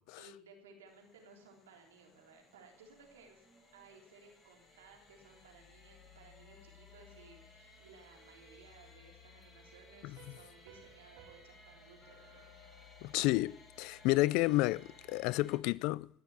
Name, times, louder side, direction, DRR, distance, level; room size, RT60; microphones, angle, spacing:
voice 1, 0.2-12.5, right 4 dB, 90° right, 3.3 m, -59 dB
sound 1, 0.9-15.6, left 3 dB, 25° left, 7.1 m, -59 dB
Piano, 10.2-13.6, right 8 dB, 65° right, 2.6 m, -62 dB
voice 2, 13.0-16.1, left 19 dB, 70° left, 0.4 m, -31 dB
18.5 x 6.8 x 8.4 m
hypercardioid pair, 80°, 0 cm